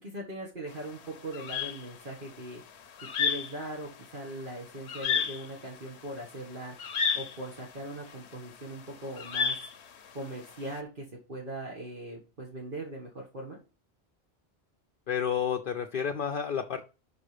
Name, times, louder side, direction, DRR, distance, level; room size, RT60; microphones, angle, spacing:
voice 1, 0.0-2.6 3.2-6.8 7.2-9.6 10.1-13.6, right 1 dB, 55° right, -2 dB, 1.7 m, -40 dB
sound 1, 0.7-10.7, left 6 dB, 85° left, 1.0 m, -32 dB
voice 2, 15.1-16.9, left 7 dB, 60° left, 5 dB, 0.8 m, -30 dB
5.4 x 5.1 x 4.9 m, 0.32 s
omnidirectional pair, 1.1 m